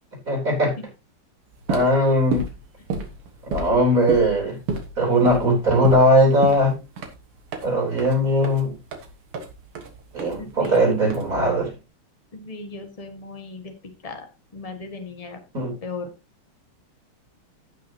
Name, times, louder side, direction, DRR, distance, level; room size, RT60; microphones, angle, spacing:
voice 1, 0.3-0.8 1.7-2.4 3.5-4.6 5.0-6.8 7.6-8.7 10.1-11.7 15.5-15.8, equal, 35° right, 1 dB, 4.2 m, -19 dB
sound 1, 1.5-11.7, right 4 dB, 80° right, 2.5 m, -33 dB
voice 2, 10.4-10.9 12.3-13.7 14.0-14.2 14.5-15.4 15.8-16.1, left 3 dB, 20° left, 5 dB, 1.5 m, -36 dB
16.0 x 6.2 x 2.9 m, 0.26 s
omnidirectional pair, 2.4 m